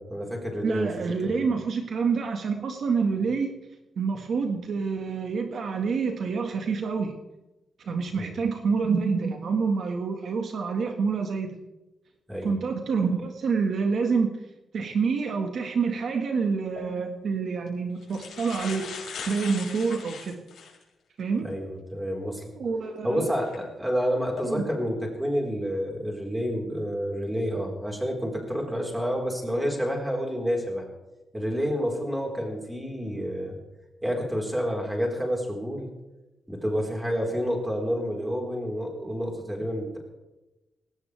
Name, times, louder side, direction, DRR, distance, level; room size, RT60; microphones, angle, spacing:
voice 1, 0.0-1.4 8.1-8.4 12.3-12.5 21.4-22.5 23.0-30.9 31.3-33.6 34.0-35.9 36.5-40.0, equal, 5° right, -1 dB, 4.4 m, -29 dB
voice 2, 0.6-3.5 4.0-7.1 7.8-11.6 12.4-14.3 14.7-18.9 19.3-20.4 21.2-21.5 22.6-23.3 24.4-24.7, right 5 dB, 55° right, 4 dB, 1.7 m, -27 dB
sound 1, 16.6-16.8 17.7-17.8 18.0-20.8 21.4-21.5 23.3-23.5 24.1-24.4, left 6 dB, 75° left, 5.6 m, -39 dB
20.0 x 18.0 x 3.4 m, 1.0 s
wide cardioid pair, 160°, 0 cm